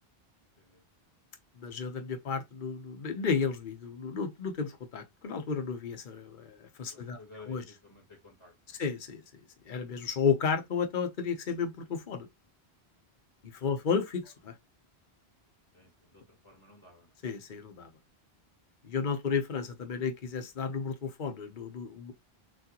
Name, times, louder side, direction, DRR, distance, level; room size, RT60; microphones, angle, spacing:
voice 1, 1.6-7.2 7.5-7.6 8.7-9.2 9.7-12.3 13.5-14.5 17.2-17.9 18.8-22.1, left 6 dB, 55° left, 1.0 m, -32 dB
voice 2, 6.9-8.8 13.6-13.8 15.7-17.1, left 3 dB, 25° left, 2.3 m, -54 dB
6.3 x 2.4 x 2.9 m
omnidirectional pair, 1.1 m